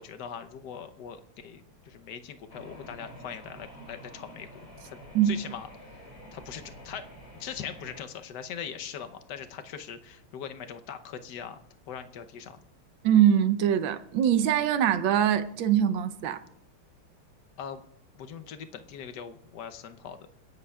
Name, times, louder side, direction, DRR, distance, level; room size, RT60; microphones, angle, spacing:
voice 1, 0.0-4.5 4.8-5.0 5.3-5.7 6.3-7.0 7.4-11.6 11.9-12.6 17.6-17.8 18.1-20.2, left 8 dB, 60° left, 1.2 m, -41 dB
sound 1, 2.5-8.0, equal, 30° left, 3.4 m, -48 dB
voice 2, 13.0-16.4, right 10 dB, 70° right, 1.4 m, -23 dB
28.0 x 10.5 x 2.3 m
omnidirectional pair, 2.3 m